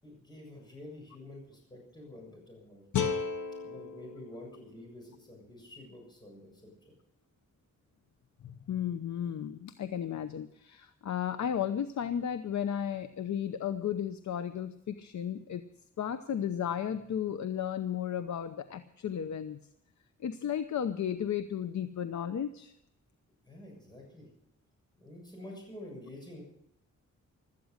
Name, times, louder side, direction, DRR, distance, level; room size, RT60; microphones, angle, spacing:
voice 1, 0.0-2.8 3.6-6.9 23.5-24.3 25.0-26.4, left 1 dB, 15° left, -1 dB, 6.8 m, -48 dB
sound 1, 2.9-6.0, left 6 dB, 90° left, 1.2 m, -36 dB
voice 2, 8.4-15.6 16.0-19.6 20.2-22.7, left 9 dB, 75° left, 10 dB, 0.8 m, -34 dB
16.5 x 13.0 x 6.5 m, 0.77 s
wide cardioid pair, 120°, 29 cm